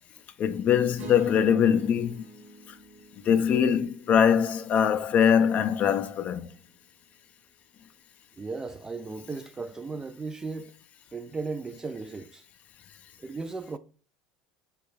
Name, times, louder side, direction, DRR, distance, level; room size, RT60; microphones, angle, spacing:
voice 1, 0.4-2.3 2.7-2.8 3.2-6.5, left 8 dB, 45° left, 0.4 m, -22 dB
sound 1, 1.0-5.3, right 1 dB, 45° right, 0.9 m, -46 dB
voice 2, 8.4-10.8 11.1-12.4 13.2-13.8, right 3 dB, 20° right, 0.4 m, -36 dB
4.3 x 2.3 x 4.6 m
hypercardioid pair, 70°, 4 cm